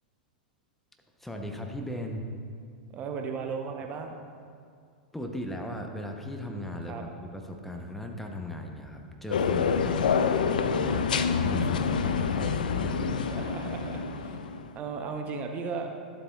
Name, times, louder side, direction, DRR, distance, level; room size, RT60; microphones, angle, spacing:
voice 1, 1.2-2.3 5.1-10.3 10.6-11.0 11.4-13.1, left 1 dB, 5° left, 2 dB, 0.7 m, -37 dB
voice 2, 2.9-4.1 6.9-7.0 9.9-11.0 12.1-12.2 12.8-14.4 14.7-15.9, right 5 dB, 30° right, 4 dB, 0.7 m, -37 dB
sound 1, 9.3-14.7, left 6 dB, 70° left, 0.4 m, -27 dB
12.0 x 7.8 x 2.3 m, 2.3 s
figure-of-eight pair, 95°, 5 cm